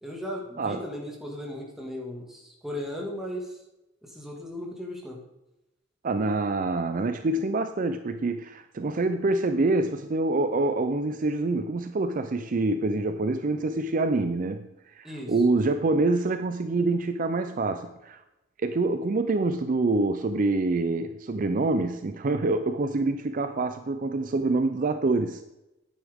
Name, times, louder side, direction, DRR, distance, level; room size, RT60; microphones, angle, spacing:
voice 1, 0.0-3.6 4.0-5.2 15.0-15.3, left 1 dB, ahead, -2 dB, 2.0 m, -36 dB
voice 2, 6.0-14.7 15.0-18.2 18.6-25.4, right 2 dB, 45° right, 9 dB, 0.5 m, -26 dB
10.0 x 9.2 x 3.6 m, 0.94 s
head